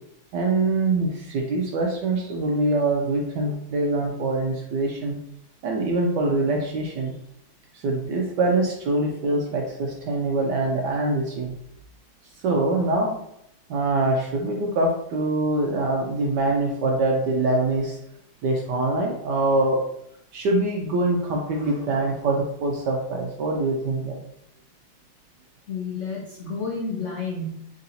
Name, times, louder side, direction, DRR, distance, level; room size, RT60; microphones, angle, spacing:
voice 1, 0.3-5.2 5.6-7.1 7.8-11.5 12.4-13.2 13.7-18.0 18.4-19.8 20.3-24.2, right 2 dB, 75° right, 0 dB, 1.0 m, -24 dB
voice 2, 25.7-27.7, left 4 dB, 85° left, -3 dB, 0.6 m, -31 dB
3.8 x 2.6 x 4.1 m, 0.73 s
omnidirectional pair, 2.3 m